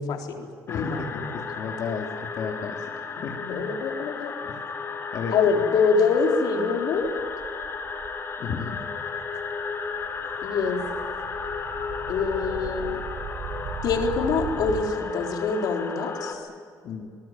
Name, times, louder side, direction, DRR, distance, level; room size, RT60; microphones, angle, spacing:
voice 1, 0.0-1.4 3.1-4.3 5.3-7.1 10.4-10.8 12.1-13.0 13.8-16.5, left 5 dB, 80° left, 2 dB, 4.1 m, -25 dB
voice 2, 0.7-2.9 3.2-3.4 4.5-4.6 5.1-5.4 8.4-8.8 16.8-17.1, left 6 dB, 60° left, 0 dB, 2.6 m, -33 dB
sound 1, 0.7-16.3, left 5 dB, 35° left, 3.6 m, -34 dB
sound 2, 7.0-8.2 8.8-8.9 9.2-14.8, right 7 dB, 75° right, 3.6 m, -38 dB
25.5 x 20.5 x 8.9 m, 2.1 s
cardioid pair, 130°, 7 cm